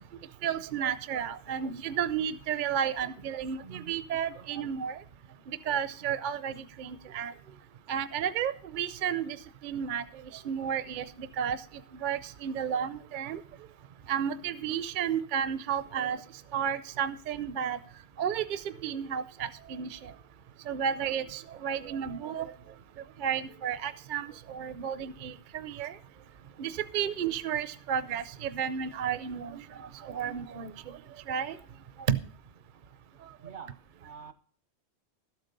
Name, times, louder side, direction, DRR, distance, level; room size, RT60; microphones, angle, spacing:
voice 1, 0.4-5.0 5.5-7.3 7.9-9.4 9.6-10.1 10.3-11.6 12.0-13.4 14.1-16.2 16.5-17.8 18.2-20.1 20.7-22.5 23.2-26.0 26.6-30.7 31.3-31.6 32.1-32.2, right 8 dB, 55° right, 14 dB, 0.7 m, -32 dB
voice 2, 33.4-34.3, right 6 dB, 80° right, 10 dB, 1.6 m, -46 dB
12.5 x 8.1 x 5.2 m, 0.44 s
omnidirectional pair, 1.1 m